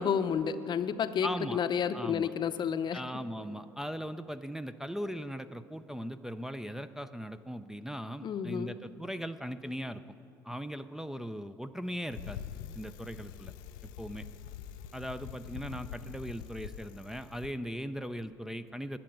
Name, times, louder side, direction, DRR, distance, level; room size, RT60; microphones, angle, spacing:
voice 1, 0.0-3.0 8.2-8.7, left 7 dB, 45° left, 11 dB, 0.7 m, -30 dB
voice 2, 1.2-1.6 1.9-2.3 2.9-10.0 10.4-12.4 12.7-13.5 14.0-14.3 14.9-19.0, equal, 5° right, 8 dB, 0.5 m, -39 dB
Bicycle, 12.1-17.5, left 9 dB, 80° left, 0.4 m, -45 dB
11.5 x 7.6 x 9.1 m, 2.9 s
hypercardioid pair, 60°, 11 cm